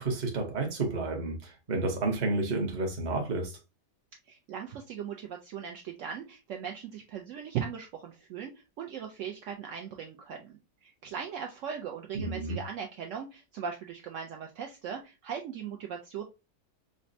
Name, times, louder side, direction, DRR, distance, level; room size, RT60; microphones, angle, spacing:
voice 1, 0.0-3.6 12.1-12.6, right 2 dB, 40° right, 0.7 m, -31 dB
voice 2, 4.3-8.5 8.8-16.2, right 7 dB, 80° right, 0.7 m, -39 dB
5.0 x 2.2 x 2.6 m
omnidirectional pair, 1.9 m